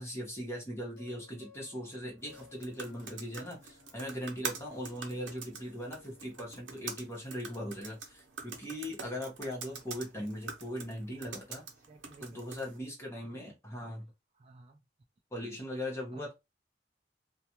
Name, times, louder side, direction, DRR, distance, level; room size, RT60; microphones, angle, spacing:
voice 1, 0.0-11.6 12.2-14.1 15.3-16.3, equal, 15° left, 1.0 m, -40 dB
sound 1, 0.8-6.6, left 4 dB, 75° left, 0.9 m, -59 dB
sound 2, 2.2-12.8, right 5 dB, 85° right, 0.6 m, -45 dB
voice 2, 11.9-12.6 13.3-13.9 14.4-14.8 16.1-16.3, right 2 dB, 35° right, 0.4 m, -55 dB
2.4 x 2.3 x 2.8 m
head